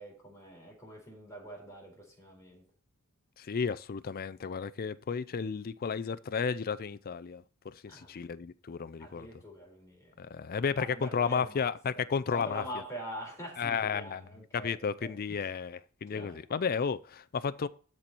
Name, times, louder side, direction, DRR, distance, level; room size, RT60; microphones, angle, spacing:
voice 1, 0.0-2.6 7.9-8.1 9.0-10.2 10.7-11.7 11.9-12.0 12.3-15.1 16.1-16.4, right 1 dB, 15° left, 4.1 m, -44 dB
voice 2, 3.4-9.4 10.2-12.6 13.6-14.2 14.5-17.7, left 6 dB, 45° left, 0.4 m, -33 dB
13.0 x 4.5 x 4.1 m
head